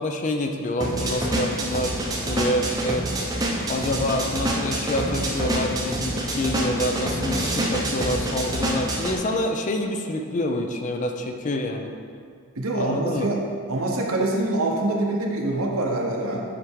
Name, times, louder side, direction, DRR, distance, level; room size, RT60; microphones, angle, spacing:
voice 1, 0.0-1.9 2.2-3.1 3.7-12.0 12.7-13.3, left 1 dB, 35° left, 4 dB, 0.4 m, -27 dB
sound 1, 0.8-9.2, right 1 dB, 15° right, 0.7 m, -27 dB
voice 2, 12.6-13.4 13.7-16.4, right 2 dB, 65° right, 0 dB, 0.9 m, -25 dB
8.4 x 3.4 x 4.6 m, 2.2 s
head